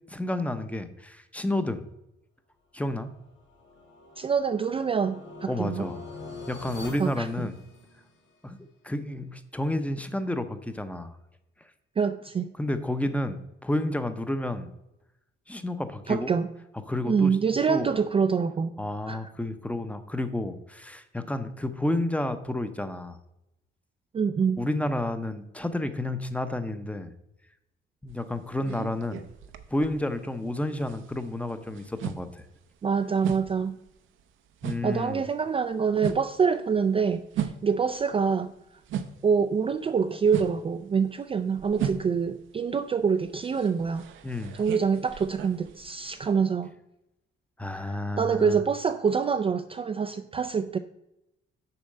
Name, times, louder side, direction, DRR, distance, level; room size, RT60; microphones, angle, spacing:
voice 1, 0.1-1.9 2.7-3.1 5.5-6.0 6.5-7.5 8.4-8.6 8.8-11.2 12.6-14.7 15.5-16.3 16.9-17.4 17.7-17.9 18.8-23.2 24.6-27.1 28.0-29.2 29.7-32.4 34.6-35.2 44.2-44.6 47.6-48.6, left 1 dB, 5° left, 10 dB, 0.7 m, -30 dB
sound 1, 3.1-8.3, left 3 dB, 65° left, 2.6 m, -44 dB
voice 2, 4.2-5.9 7.0-7.5 12.0-12.5 16.1-16.5 17.1-18.7 19.1-19.2 24.1-24.6 32.8-33.8 34.8-38.5 39.2-44.1 44.5-46.7 47.7-50.8, right 6 dB, 30° right, 9 dB, 0.4 m, -26 dB
sound 2, 28.1-30.5 30.7-39.4 39.7-46.4, right 8 dB, 80° right, 0.7 m, -37 dB
7.0 x 4.3 x 6.5 m, 0.88 s
cardioid pair, 90°, 20 cm